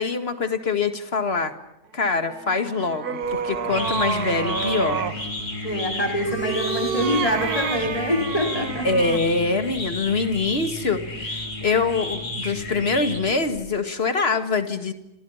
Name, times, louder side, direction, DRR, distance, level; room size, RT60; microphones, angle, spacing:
voice 1, 0.0-1.5 1.9-5.0 8.8-14.9, left 4 dB, 40° left, 9 dB, 2.2 m, -24 dB
sound 1, 2.2-5.2 6.2-9.3, right 6 dB, 70° right, 2.0 m, -29 dB
sound 2, 3.2-13.6, left 1 dB, 80° left, 5.1 m, -33 dB
voice 2, 5.6-8.9, left 1 dB, 20° left, 3 dB, 4.2 m, -25 dB
30.0 x 27.0 x 5.8 m, 0.86 s
omnidirectional pair, 1.7 m